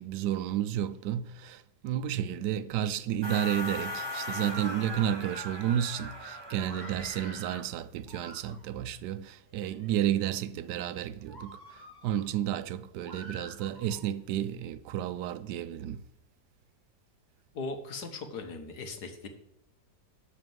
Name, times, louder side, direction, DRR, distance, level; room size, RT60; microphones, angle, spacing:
voice 1, 0.0-16.0, right 11 dB, 80° right, 1.2 m, -32 dB
sound 1, 3.2-7.7, left 1 dB, 15° right, 1.4 m, -39 dB
Screaming, 6.6-7.7 8.1-8.8 9.5-10.1 10.6-10.8 11.3-12.3 13.0-14.1, equal, 15° left, 2.3 m, -47 dB
voice 2, 17.5-19.3, left 3 dB, 70° left, 1.8 m, -38 dB
12.5 x 4.2 x 7.8 m
omnidirectional pair, 1.8 m